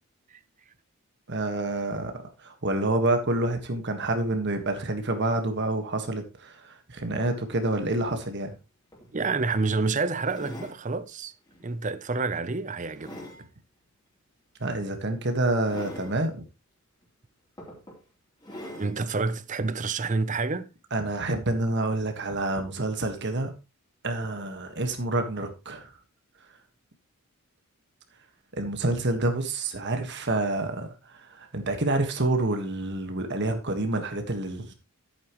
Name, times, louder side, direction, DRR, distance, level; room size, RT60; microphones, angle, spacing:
voice 1, 1.3-2.1 2.4-8.5 14.6-16.4 20.9-23.5 24.0-25.9 28.5-34.7, right 2 dB, 50° right, 1.6 m, -28 dB
sound 1, 8.6-8.7 8.9-9.1 10.2-10.8 11.5-11.7 12.2-13.4 14.7-14.9 15.6-16.2 17.0-17.1 17.6-18.0 18.4-19.0 19.7-19.8, left 1 dB, 20° left, 3.3 m, -43 dB
voice 2, 9.1-11.3 11.6-13.2 18.8-20.7, right 3 dB, 35° right, 0.6 m, -28 dB
11.0 x 8.9 x 3.1 m
head